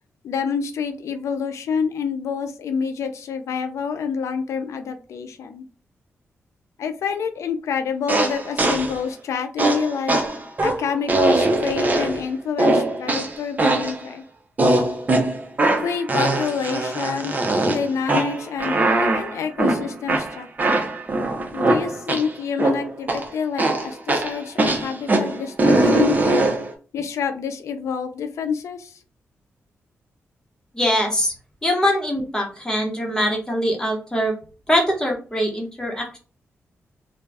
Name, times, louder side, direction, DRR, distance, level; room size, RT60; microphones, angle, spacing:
voice 1, 0.2-5.6 6.8-10.2 10.6-14.2 15.8-17.3 17.7-20.9 21.5-26.5 26.9-29.0, left 6 dB, 85° left, 8 dB, 0.4 m, -28 dB
sound 1, 8.1-9.0 9.6-12.3 12.6-14.0 14.6-22.3 22.6-23.3 23.6-26.7, right 2 dB, 35° right, 0.6 m, -21 dB
voice 2, 30.7-31.3 31.6-34.3 34.7-36.2, equal, 15° left, 0 dB, 0.9 m, -22 dB
2.4 x 2.2 x 3.3 m, 0.37 s
cardioid pair, 80°, 5 cm